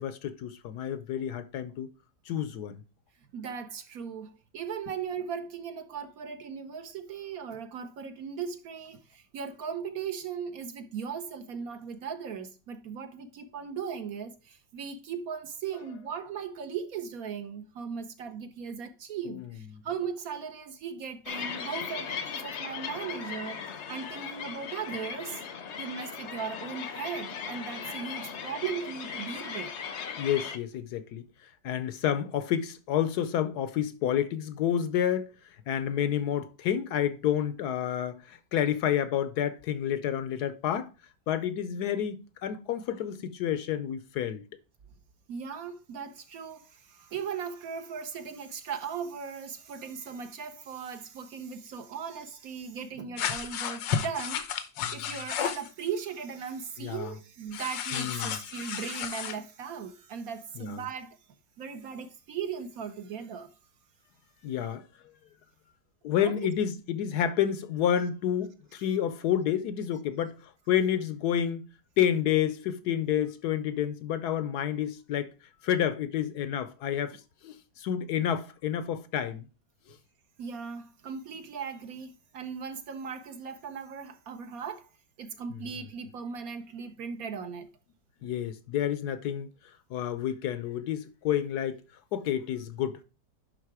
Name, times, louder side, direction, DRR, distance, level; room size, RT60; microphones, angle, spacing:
voice 1, 0.0-1.9 2.3-2.8 19.3-19.4 30.1-35.3 35.7-40.9 41.3-44.4 54.8-54.9 56.8-57.1 57.9-58.4 60.6-60.8 64.4-64.8 66.0-71.7 72.0-75.3 75.6-77.2 77.4-79.5 85.5-85.6 88.2-89.5 89.9-91.8 92.1-93.0, left 10 dB, 70° left, 1.1 m, -29 dB
voice 2, 3.3-25.4 25.8-29.7 45.3-54.4 54.9-61.2 61.6-63.5 66.2-66.5 80.4-84.9 85.2-87.7, right 6 dB, 60° right, 1.1 m, -38 dB
sound 1, 21.3-30.6, left 7 dB, 55° left, 0.8 m, -38 dB
sound 2, 53.2-55.7 57.5-59.4, left 8 dB, 90° left, 1.6 m, -33 dB
10.5 x 3.7 x 4.7 m
omnidirectional pair, 1.9 m